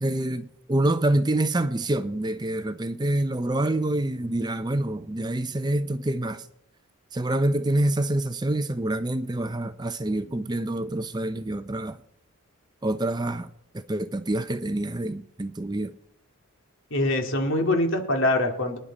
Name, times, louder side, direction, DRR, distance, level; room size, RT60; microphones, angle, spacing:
voice 1, 0.0-6.5 7.1-12.0 12.8-13.5 13.9-15.9, right 1 dB, 20° right, 0.5 m, -26 dB
voice 2, 16.9-18.8, left 1 dB, 65° left, 2.3 m, -24 dB
24.5 x 10.5 x 4.1 m
head